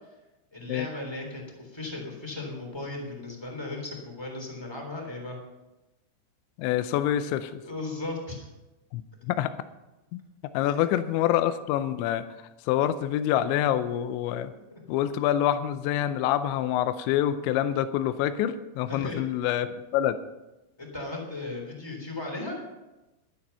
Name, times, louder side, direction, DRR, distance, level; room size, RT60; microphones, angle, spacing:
voice 1, 0.5-5.4 7.6-8.5 10.6-10.7 14.7-14.8 18.9-19.2 20.8-22.6, left 2 dB, 5° left, 0 dB, 2.7 m, -36 dB
voice 2, 6.6-7.6 8.9-9.5 10.1-10.2 10.5-12.3 12.7-14.5 14.9-20.2, left 11 dB, 85° left, 11 dB, 3.0 m, -26 dB
12.5 x 12.0 x 5.6 m, 1.0 s
omnidirectional pair, 5.2 m